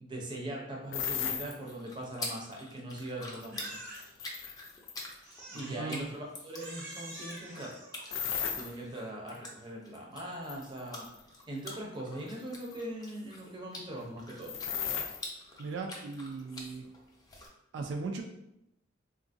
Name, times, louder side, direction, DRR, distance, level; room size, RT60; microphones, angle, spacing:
voice 1, 0.0-3.8 5.5-7.7 8.6-11.1 11.5-14.6, right 1 dB, 25° right, -2 dB, 0.6 m, -41 dB
sound 1, 0.9-1.5 3.4-5.1 8.1-8.7 10.5-11.2 11.7-11.8 12.6-12.8 14.4-15.2, left 8 dB, 80° left, 0.4 m, -35 dB
sound 2, 1.3-17.5, left 2 dB, 20° left, 0.5 m, -47 dB
Crying sobbing, 3.5-4.3 5.2-6.0 6.5-8.7, right 1 dB, 85° right, 1.0 m, -47 dB
voice 2, 5.5-6.1 15.6-16.9 17.7-18.2, right 4 dB, 70° right, 3 dB, 0.3 m, -38 dB
3.6 x 2.4 x 2.5 m, 0.86 s
head